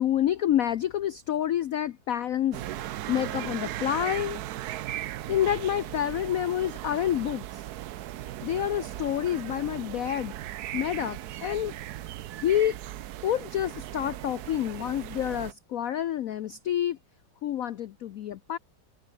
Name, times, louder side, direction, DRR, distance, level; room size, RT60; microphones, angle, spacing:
voice 1, 0.0-4.4 5.3-7.7 8.4-10.3 10.7-11.7 12.3-12.8 13.2-17.0 17.4-18.6, left 11 dB, 70° left, 0.8 m, -28 dB
sound 1, 2.5-15.5, right 13 dB, 65° right, 1.0 m, -37 dB
omnidirectional pair, 2.2 m